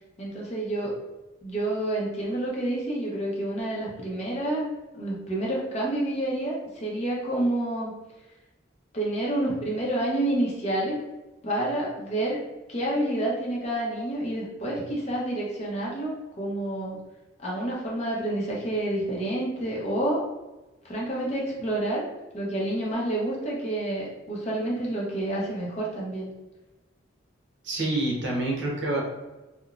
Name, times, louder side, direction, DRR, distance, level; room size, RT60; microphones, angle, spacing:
voice 1, 0.2-0.9 1.4-4.7 4.9-7.9 8.9-11.0 11.4-12.4 12.7-17.0 17.4-20.2 20.8-22.0 22.3-26.3, right 1 dB, 35° left, -4 dB, 0.6 m, -28 dB
voice 2, 27.6-29.0, right 2 dB, 65° right, -2 dB, 0.7 m, -27 dB
2.9 x 2.1 x 2.4 m, 1.1 s
head